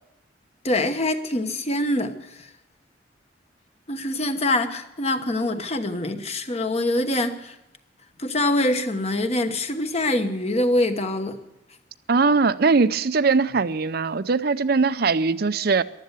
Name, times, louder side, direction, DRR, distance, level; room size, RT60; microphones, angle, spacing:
voice 1, 0.6-2.2 3.9-7.5 8.2-11.4, left 1 dB, 35° left, 1.2 m, -24 dB
voice 2, 12.1-15.8, right 4 dB, 55° right, 0.6 m, -20 dB
15.0 x 11.5 x 8.2 m
head